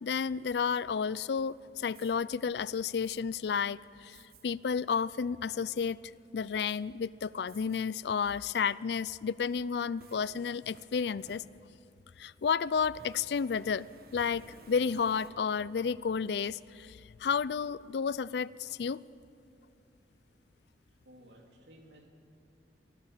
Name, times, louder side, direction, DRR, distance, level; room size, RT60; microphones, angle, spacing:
voice 1, 0.0-6.0 6.3-11.4 12.2-13.9 14.1-19.0, left 6 dB, 65° left, 20 dB, 0.4 m, -32 dB
Fire, 1.9-2.2 3.0-3.2 4.1-4.4 4.9-5.0 5.5-6.0 6.6-6.8 7.5-7.8 8.3-8.4 9.5-12.0 12.8-15.7, right 3 dB, 60° right, 1.2 m, -58 dB
voice 2, 20.9-22.1, equal, 85° right, 2 dB, 2.8 m, -57 dB
24.0 x 15.5 x 7.4 m, 2.7 s
head